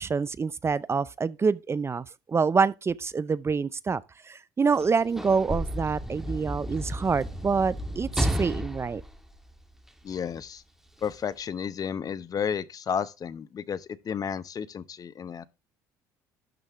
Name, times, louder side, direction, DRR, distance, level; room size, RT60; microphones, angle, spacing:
voice 1, 0.0-9.0, right 5 dB, 30° right, 0.5 m, -26 dB
Sliding door / Slam, 4.7-10.1 11.0-11.1, equal, 5° right, 2.0 m, -32 dB
voice 2, 10.0-10.6 11.0-15.4, left 7 dB, 40° left, 0.9 m, -32 dB
12.0 x 5.5 x 3.6 m
hypercardioid pair, 70°, 9 cm